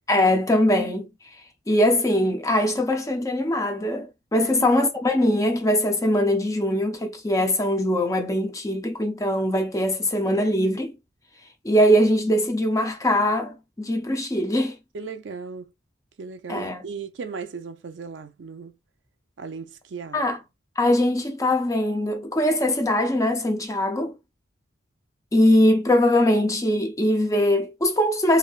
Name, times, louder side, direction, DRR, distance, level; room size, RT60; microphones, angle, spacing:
voice 1, 0.1-1.1 1.7-10.9 11.6-14.8 16.5-16.8 20.1-20.4 20.8-24.1 25.3-28.4, left 1 dB, 15° left, 0.5 m, -21 dB
voice 2, 14.9-15.7 16.2-18.7 19.4-20.2, right 5 dB, 65° right, 0.5 m, -36 dB
3.2 x 2.6 x 2.3 m
head